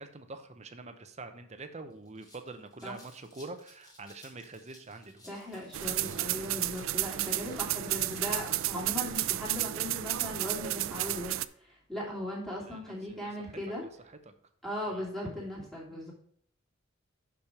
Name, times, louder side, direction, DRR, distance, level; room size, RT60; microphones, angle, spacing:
voice 1, 0.0-5.3 12.6-13.6 14.0-14.2 14.9-15.0, right 3 dB, 35° right, 8 dB, 0.7 m, -46 dB
sound 1, 1.5-1.6 1.9-9.3, left 1 dB, 20° left, 2.2 m, -57 dB
voice 2, 5.3-11.3 11.6-13.8 14.6-16.1, left 1 dB, ahead, -5 dB, 2.7 m, -38 dB
sound 2, 5.7-11.4, right 15 dB, 70° right, 0.3 m, -32 dB
6.2 x 5.9 x 4.9 m, 0.64 s
head